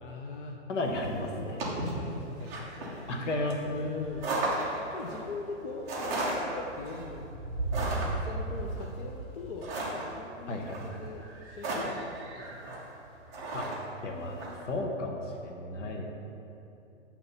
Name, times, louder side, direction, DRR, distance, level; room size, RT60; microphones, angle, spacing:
voice 1, 0.0-0.6 1.4-3.1 3.7-4.3 4.8-7.3 8.0-9.7 10.1-10.6 11.0-12.8 15.8-16.0, left 4 dB, 45° left, 1 dB, 0.5 m, -42 dB
voice 2, 0.7-1.6 3.1-3.8 10.5-11.0 13.5-13.7 14.0-16.0, left 1 dB, 75° left, 1 dB, 1.2 m, -33 dB
sound 1, 0.8-14.6, right 2 dB, 10° right, 0.4 m, -35 dB
8.5 x 3.0 x 5.3 m, 2.8 s
hypercardioid pair, 150°, 37 cm